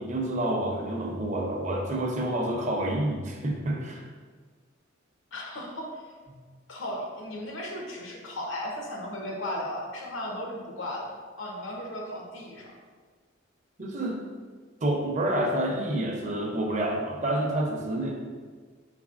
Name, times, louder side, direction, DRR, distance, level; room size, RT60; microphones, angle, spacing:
voice 1, 0.0-4.0 6.3-6.4 13.8-14.2 14.8-18.2, right 1 dB, 40° right, 0 dB, 0.5 m, -28 dB
voice 2, 5.3-6.0 6.7-12.7, left 1 dB, 85° left, 0 dB, 0.8 m, -36 dB
4.1 x 3.9 x 2.4 m, 1.5 s
head